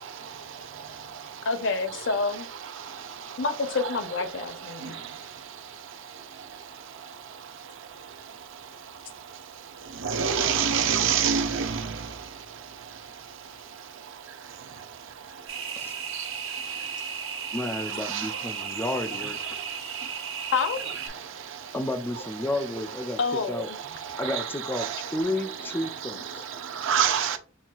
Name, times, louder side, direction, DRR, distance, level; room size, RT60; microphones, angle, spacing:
voice 1, 1.4-2.5 3.4-5.0 20.5-20.8 22.7-23.8 26.4-26.5, left 4 dB, 65° left, 0.7 m, -28 dB
voice 2, 10.0-11.7 24.3-24.4 24.8-24.9 26.8-27.4, right 7 dB, 70° right, 0.6 m, -24 dB
sound 1, 15.5-21.1, right 6 dB, 85° right, 1.2 m, -35 dB
voice 3, 17.5-19.4 21.7-23.2 23.5-23.7 24.2-26.5, left 1 dB, 10° left, 0.4 m, -31 dB
5.5 x 2.3 x 2.4 m
head